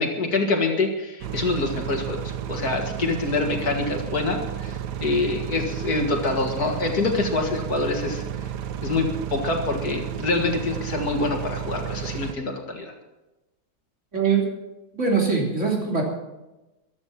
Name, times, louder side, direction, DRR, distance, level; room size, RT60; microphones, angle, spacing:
voice 1, 0.0-8.5 8.8-12.9, left 3 dB, 65° left, 3 dB, 2.5 m, -26 dB
sound 1, 1.2-12.3, right 9 dB, 75° right, 1.4 m, -32 dB
voice 2, 14.1-14.5 14.9-16.0, right 5 dB, 45° right, -1 dB, 3.5 m, -22 dB
15.0 x 12.5 x 5.8 m, 1.0 s
omnidirectional pair, 1.8 m